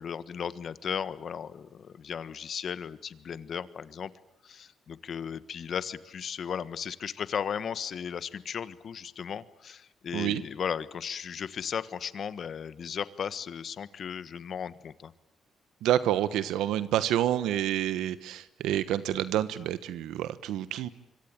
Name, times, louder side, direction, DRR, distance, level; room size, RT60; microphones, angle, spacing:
voice 1, 0.0-4.1 4.4-15.1, left 7 dB, 55° left, 15 dB, 1.4 m, -36 dB
voice 2, 15.8-20.9, right 12 dB, 90° right, 14 dB, 1.1 m, -28 dB
25.0 x 24.5 x 9.0 m, 0.87 s
cardioid pair, 90°, 0 cm